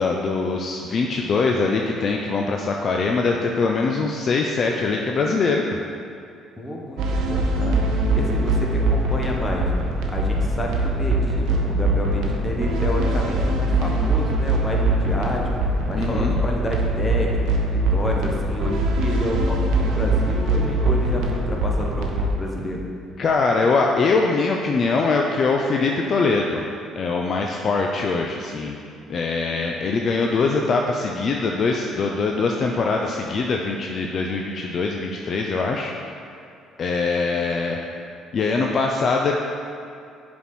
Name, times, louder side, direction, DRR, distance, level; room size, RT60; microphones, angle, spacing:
voice 1, 0.0-5.8 15.9-16.3 23.2-26.6 27.0-28.8 29.1-35.9 36.8-37.8 38.3-39.3, left 4 dB, 50° left, 1 dB, 0.5 m, -22 dB
voice 2, 6.6-7.8 8.1-9.7 10.1-22.8, left 1 dB, 25° left, -1 dB, 1.2 m, -29 dB
sound 1, 7.0-22.3, right 1 dB, 75° right, 0.8 m, -22 dB
7.0 x 4.3 x 4.5 m, 2.4 s
supercardioid pair, 70°, 0 cm